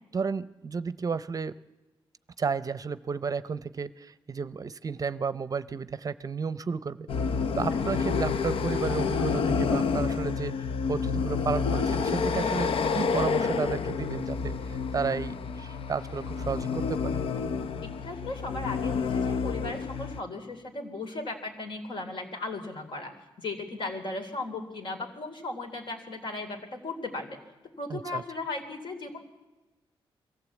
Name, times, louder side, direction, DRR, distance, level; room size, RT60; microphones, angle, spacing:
voice 1, 0.1-1.5 2.4-7.1 7.6-10.5 10.9-17.2 27.9-28.2, right 5 dB, 40° right, 15 dB, 0.6 m, -32 dB
sound 1, 7.1-20.2, left 5 dB, 75° left, 0.8 m, -29 dB
voice 2, 17.8-27.4 27.8-29.2, left 3 dB, 60° left, 4 dB, 3.6 m, -36 dB
23.0 x 15.0 x 8.4 m, 1.1 s
cardioid pair, 110°, 9 cm